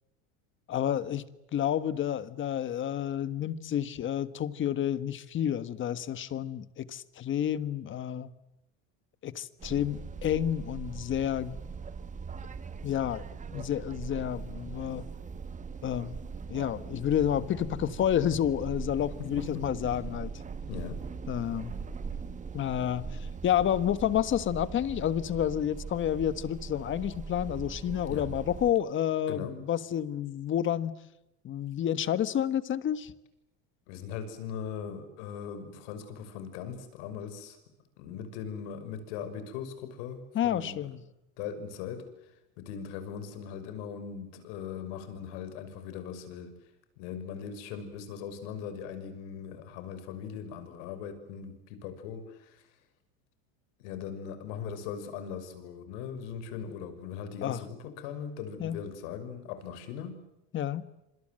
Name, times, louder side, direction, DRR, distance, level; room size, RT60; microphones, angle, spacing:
voice 1, 0.7-1.3 1.5-8.3 9.2-11.6 12.8-13.2 13.5-15.0 15.8-16.2 16.5-20.3 21.3-21.8 22.5-30.9 31.4-33.1 40.3-41.0 57.4-57.6 58.6-58.8 60.5-60.8, left 10 dB, 35° left, 1.4 m, -30 dB
sound 1, 9.6-28.7, right 5 dB, 20° right, 1.8 m, -40 dB
voice 2, 19.2-19.6 20.7-21.0 28.1-28.3 29.3-29.5 33.9-37.6 38.0-40.8 41.4-42.0 42.6-46.5 47.0-52.6 53.8-60.2, left 7 dB, 75° left, 5.9 m, -39 dB
26.5 x 26.0 x 7.8 m
supercardioid pair, 135°, 35 cm